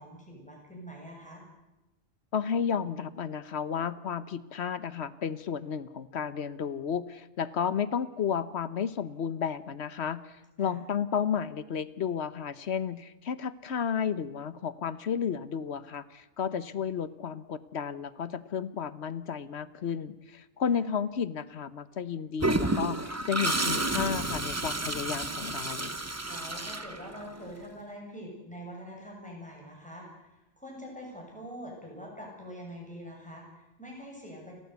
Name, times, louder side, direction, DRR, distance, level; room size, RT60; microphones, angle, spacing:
voice 1, 0.0-1.4 10.6-10.8 16.4-16.6 20.7-20.8 26.2-34.5, equal, 5° left, -2 dB, 7.7 m, -44 dB
voice 2, 2.3-26.0, left 7 dB, 70° left, 15 dB, 1.2 m, -32 dB
Toilet flush, 22.4-27.5, right 2 dB, 15° right, 1.0 m, -31 dB
30.0 x 14.0 x 8.2 m, 0.97 s
omnidirectional pair, 1.1 m